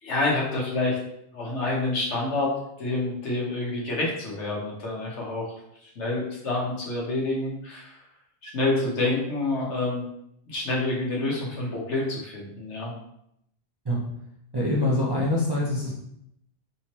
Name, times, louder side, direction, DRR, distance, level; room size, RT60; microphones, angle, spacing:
voice 1, 0.0-1.0 1.3-5.5 6.0-7.9 8.4-10.0 10.5-12.9, left 2 dB, 85° left, -3 dB, 1.3 m, -28 dB
voice 2, 14.5-15.9, left 1 dB, 35° right, -5 dB, 0.4 m, -24 dB
3.4 x 2.9 x 2.9 m, 0.77 s
omnidirectional pair, 1.2 m